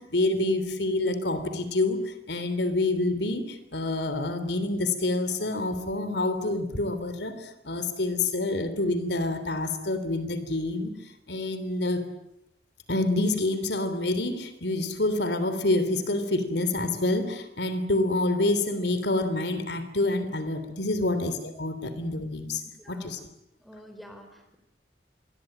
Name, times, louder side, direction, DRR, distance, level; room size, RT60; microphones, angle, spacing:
voice 1, 0.0-10.9 11.3-12.1 12.9-22.6 22.9-23.2, left 2 dB, 80° left, 11 dB, 3.3 m, -27 dB
voice 2, 22.7-23.2 23.6-24.6, equal, ahead, 6 dB, 4.3 m, -48 dB
26.0 x 22.5 x 8.9 m, 0.85 s
head